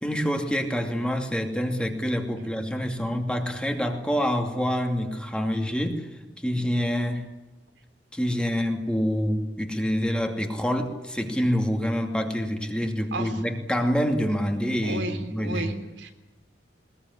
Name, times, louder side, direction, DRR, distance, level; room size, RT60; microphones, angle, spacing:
voice 1, 0.0-6.1 6.4-7.2 8.1-15.7, equal, 5° left, 3 dB, 2.6 m, -26 dB
voice 2, 14.8-16.1, right 2 dB, 85° right, 6 dB, 3.4 m, -33 dB
21.0 x 21.0 x 9.8 m, 1.0 s
head